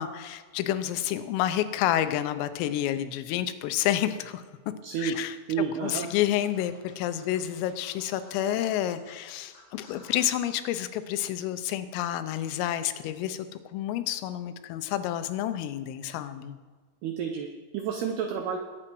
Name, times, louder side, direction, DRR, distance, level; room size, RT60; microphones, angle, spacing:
voice 1, 0.0-4.4 5.0-5.4 5.8-13.5 13.7-16.6, left 12 dB, 90° left, 11 dB, 3.4 m, -29 dB
voice 2, 4.8-5.2 5.5-6.1 17.0-18.6, right 7 dB, 85° right, 5 dB, 2.3 m, -30 dB
Scratching (performance technique), 6.0-10.4, left 3 dB, 55° left, 4.5 m, -53 dB
21.0 x 8.8 x 4.7 m, 1.4 s
omnidirectional pair, 5.8 m